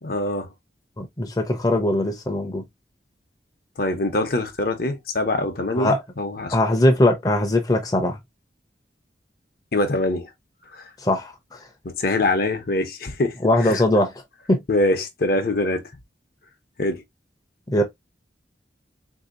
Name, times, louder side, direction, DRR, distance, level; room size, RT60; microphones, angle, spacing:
voice 1, 0.0-0.5 3.8-6.6 9.7-10.3 10.7-10.9 11.8-13.4 13.6-13.7 14.7-15.8 16.8-17.0, left 2 dB, 55° left, 0.8 m, -24 dB
voice 2, 1.0-2.6 5.8-6.0 6.5-8.2 11.0-11.7 13.4-14.1 14.5-14.6 17.7-17.8, left 1 dB, 20° left, 0.6 m, -20 dB
3.6 x 2.7 x 2.4 m
head